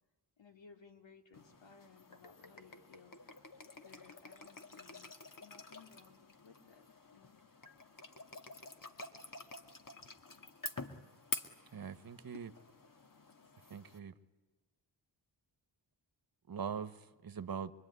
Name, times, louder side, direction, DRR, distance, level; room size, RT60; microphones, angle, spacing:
voice 1, 0.4-3.2 3.8-7.4 12.3-12.4, left 5 dB, 75° left, 2.8 m, -60 dB
sound 1, 1.3-14.0, left 3 dB, 45° left, 2.1 m, -49 dB
voice 2, 11.7-12.5 13.7-14.1 16.5-17.7, right 7 dB, 50° right, 1.3 m, -42 dB
25.0 x 24.0 x 9.7 m
wide cardioid pair, 95°, 45 cm